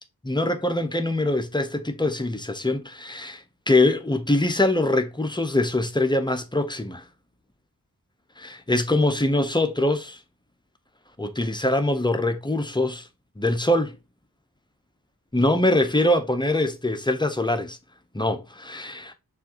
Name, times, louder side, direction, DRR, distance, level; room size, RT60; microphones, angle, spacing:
voice 1, 0.2-7.0 8.4-10.2 11.2-13.1 13.4-14.0 15.3-17.8 18.1-19.1, left 1 dB, 10° left, 0.5 m, -23 dB
6.1 x 2.5 x 2.8 m
wide cardioid pair, 60°, 37 cm